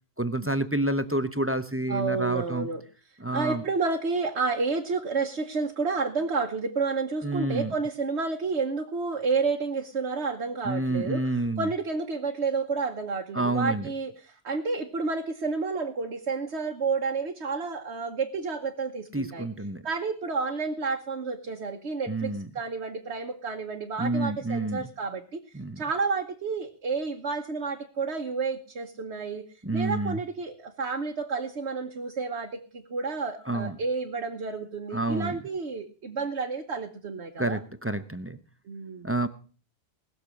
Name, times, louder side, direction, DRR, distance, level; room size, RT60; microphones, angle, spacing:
voice 1, 0.2-2.7 3.2-3.6 7.2-7.7 10.6-11.7 13.3-13.9 19.1-19.8 22.1-22.5 24.0-24.9 25.5-25.8 29.6-30.2 33.5-33.7 34.9-35.4 37.4-38.4 39.0-39.3, right 2 dB, 15° right, 11 dB, 0.7 m, -28 dB
voice 2, 1.9-2.8 3.3-11.2 11.6-19.5 19.8-25.4 25.8-29.5 29.7-37.6 38.7-39.1, right 4 dB, 90° right, 2 dB, 1.4 m, -30 dB
19.5 x 6.9 x 6.3 m, 0.40 s
omnidirectional pair, 1.1 m